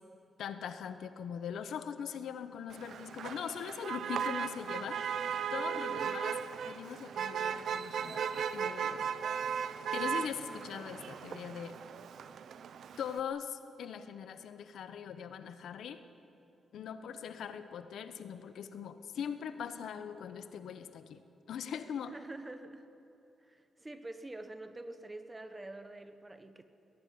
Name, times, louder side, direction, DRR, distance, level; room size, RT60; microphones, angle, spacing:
voice 1, 0.4-6.3 6.6-9.1 9.9-11.8 13.0-16.0 16.7-22.1, left 8 dB, 80° left, 10 dB, 1.2 m, -41 dB
Motor vehicle (road), 2.7-13.2, right 7 dB, 65° right, 0.9 m, -37 dB
voice 2, 5.7-6.1 22.0-22.9 23.4-26.6, right 2 dB, 15° right, 10 dB, 1.3 m, -46 dB
22.0 x 19.0 x 9.5 m, 2.7 s
wide cardioid pair, 135°, 0 cm